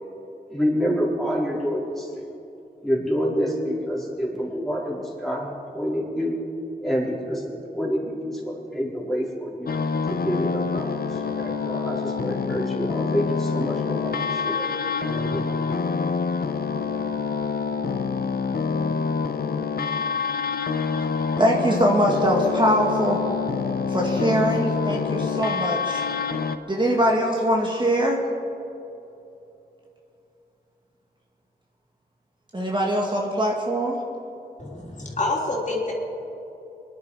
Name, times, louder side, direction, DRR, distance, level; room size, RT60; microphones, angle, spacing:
voice 1, 0.5-2.2 2.8-6.4 6.8-9.7 10.1-14.7 15.0-15.6, equal, ahead, -4 dB, 4.3 m, -27 dB
sound 1, 9.7-26.6, left 5 dB, 65° left, 0.8 m, -26 dB
voice 2, 21.4-23.2 23.9-26.1 26.7-28.2 32.5-34.0, equal, 30° right, -1 dB, 2.2 m, -22 dB
voice 3, 34.6-35.9, left 2 dB, 50° left, -3 dB, 3.4 m, -27 dB
24.5 x 11.0 x 4.9 m, 2.9 s
wide cardioid pair, 80°, 17 cm